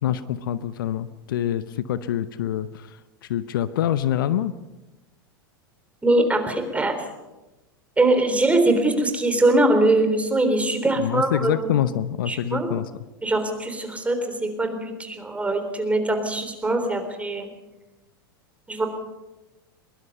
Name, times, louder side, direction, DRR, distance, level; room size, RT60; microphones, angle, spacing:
voice 1, 0.0-3.0 3.3-4.5 11.0-12.9, left 11 dB, 65° left, 15 dB, 0.8 m, -25 dB
voice 2, 6.0-7.0 8.0-11.7 12.3-12.7 13.2-17.5 18.7-18.9, right 2 dB, 10° right, 6 dB, 3.7 m, -22 dB
22.5 x 22.0 x 5.5 m, 1.1 s
figure-of-eight pair, 90°, 12 cm